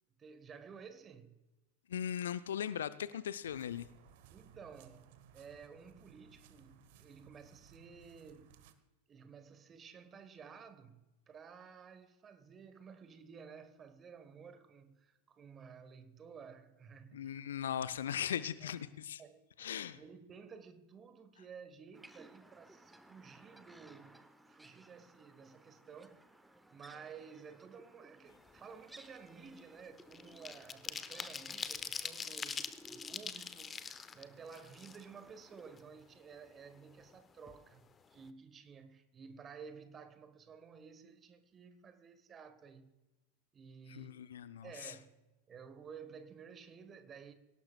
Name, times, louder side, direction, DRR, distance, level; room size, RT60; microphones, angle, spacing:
voice 1, 0.2-1.4 4.3-8.6 9.1-17.4 18.6-18.7 19.2-26.2 26.7-43.0 43.5-44.2 44.6-45.2 45.5-47.3, right 6 dB, 20° right, 1.4 m, -54 dB
voice 2, 1.9-3.9 17.1-19.2 19.6-20.0 43.9-44.9, left 9 dB, 65° left, 0.6 m, -39 dB
sound 1, 3.5-8.7, right 8 dB, 50° right, 1.2 m, -61 dB
sound 2, 21.9-35.8, right 1 dB, 5° right, 1.0 m, -60 dB
sound 3, 28.4-28.6 29.0-35.4 35.8-35.9 36.2-37.2 37.5-37.6 37.9-38.2, left 6 dB, 20° left, 0.8 m, -44 dB
25.0 x 17.5 x 2.4 m
figure-of-eight pair, 90°, 0 cm